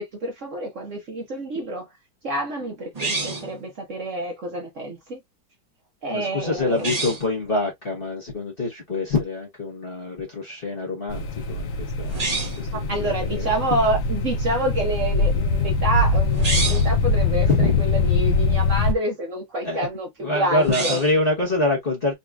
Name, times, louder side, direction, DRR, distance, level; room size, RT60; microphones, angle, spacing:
voice 1, 0.0-1.9 2.2-5.2 6.0-6.9 12.7-21.0, right 1 dB, 50° right, 1.1 m, -28 dB
sound 1, 2.9-3.6 6.7-7.3 12.0-12.7 16.3-17.0 20.5-21.2, right 3 dB, 25° right, 1.0 m, -27 dB
voice 2, 6.1-12.2 12.6-13.5 17.5-18.0 19.6-19.9 20.2-22.2, left 2 dB, 35° left, 1.2 m, -25 dB
sound 2, 11.1-18.9, left 3 dB, 60° left, 0.9 m, -22 dB
4.0 x 2.9 x 2.3 m
omnidirectional pair, 2.0 m